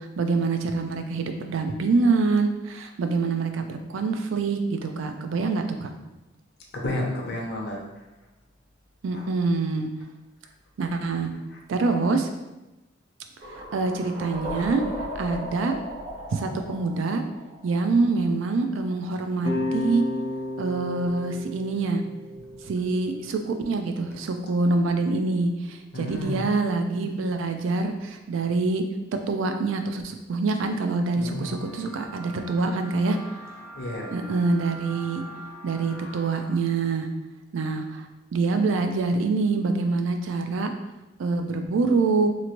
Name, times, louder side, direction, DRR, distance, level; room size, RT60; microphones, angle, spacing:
voice 1, 0.0-5.9 9.0-9.9 10.8-11.3 11.7-12.3 13.7-14.8 15.2-15.8 16.3-17.2 17.6-20.0 20.6-22.0 22.7-28.8 29.3-33.2 34.1-35.2 35.6-37.1 37.5-38.1 38.3-40.7 41.2-42.3, right 3 dB, 75° right, 6 dB, 0.4 m, -25 dB
voice 2, 6.7-7.8 11.5-11.6 25.9-26.5 31.2-31.6 33.7-34.3, left 1 dB, 55° left, -1 dB, 0.6 m, -31 dB
sound 1, 13.4-18.3, equal, 35° right, 0.7 m, -36 dB
sound 2, 19.4-24.5, left 1 dB, 75° left, 0.8 m, -33 dB
sound 3, 30.8-36.6, right 1 dB, 10° left, 0.5 m, -44 dB
2.9 x 2.5 x 2.9 m, 1.0 s
head